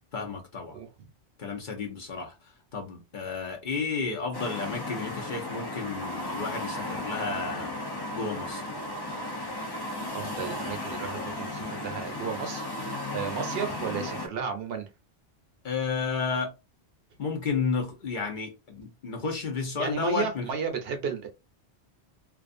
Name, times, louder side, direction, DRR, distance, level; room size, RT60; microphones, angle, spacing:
voice 1, 0.1-0.8 1.4-2.3 2.7-7.7 8.1-8.7 15.6-16.6 17.2-20.5, left 4 dB, 50° left, 0.8 m, -32 dB
voice 2, 0.7-1.1 10.1-12.7 13.1-14.9 19.8-21.3, right 6 dB, 65° right, 0.8 m, -33 dB
sound 1, 4.3-14.3, left 1 dB, 30° left, 0.5 m, -35 dB
2.4 x 2.4 x 2.5 m
omnidirectional pair, 1.1 m